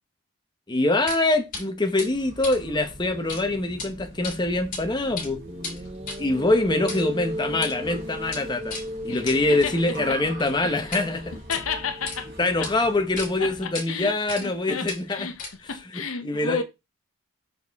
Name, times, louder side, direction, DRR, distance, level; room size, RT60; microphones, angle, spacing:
voice 1, 0.7-5.4 6.2-8.8 9.0-11.3 12.4-15.3 15.9-16.6, left 2 dB, 20° left, 0.8 m, -24 dB
sound 1, 1.1-1.2 1.5-1.6 2.0-3.4 3.7-3.9 4.2-4.8 5.1-11.1 11.4-12.2 12.6-12.7 13.2-13.3 13.7-13.9 14.3-14.6 14.9-15.8, left 4 dB, 40° left, 2.7 m, -37 dB
sound 2, 2.0-13.7, equal, 50° right, 3.1 m, -43 dB
sound 3, 5.5-12.9, equal, 30° right, 0.7 m, -37 dB
voice 2, 9.1-10.2 10.6-10.8 11.5-12.3 12.6-12.7 13.4-16.6, left 5 dB, 75° left, 0.9 m, -33 dB
6.2 x 4.6 x 3.5 m
head